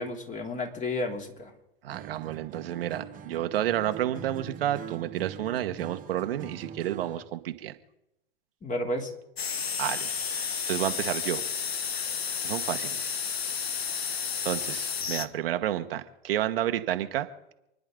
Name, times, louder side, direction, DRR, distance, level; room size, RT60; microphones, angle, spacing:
voice 1, 0.0-1.5 8.6-9.1, left 2 dB, 25° left, 2 dB, 3.0 m, -32 dB
voice 2, 1.8-7.7 9.8-11.4 11.9-12.0 12.4-13.3 14.0-17.5, right 12 dB, 70° right, 8 dB, 1.3 m, -31 dB
Acoustic guitar, 1.9-7.3, right 7 dB, 25° right, 1.5 m, -43 dB
sound 1, 9.4-15.3, left 6 dB, 90° left, 1.0 m, -31 dB
29.0 x 10.5 x 3.8 m, 0.88 s
hypercardioid pair, 100°, 30 cm